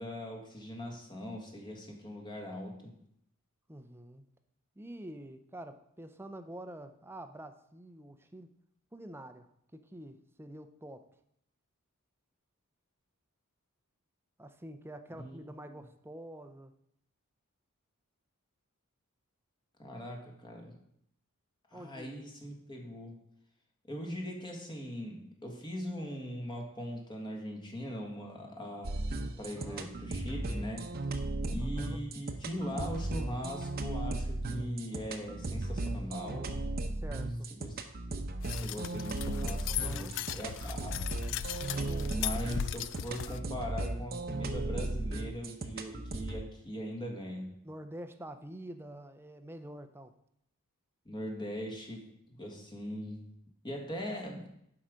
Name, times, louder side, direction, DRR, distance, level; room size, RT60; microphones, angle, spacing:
voice 1, 0.0-3.0 15.2-15.4 15.7-15.8 19.8-20.8 21.7-23.2 23.9-31.0 31.4-36.8 37.5-37.8 38.5-41.1 42.0-47.6 51.0-53.3 53.6-54.5, equal, 20° left, 1 dB, 1.6 m, -41 dB
voice 2, 3.7-4.3 4.8-8.5 8.9-9.5 9.7-11.1 14.4-16.7 21.7-22.2 29.6-29.9 31.6-32.0 36.9-37.5 39.6-40.1 41.7-42.2 47.6-50.1, right 1 dB, 10° right, 8 dB, 0.6 m, -47 dB
sound 1, 28.8-46.4, right 2 dB, 45° right, 0.8 m, -36 dB
sound 2, 38.4-43.4, left 11 dB, 55° left, 0.3 m, -38 dB
11.5 x 4.9 x 5.1 m, 0.74 s
head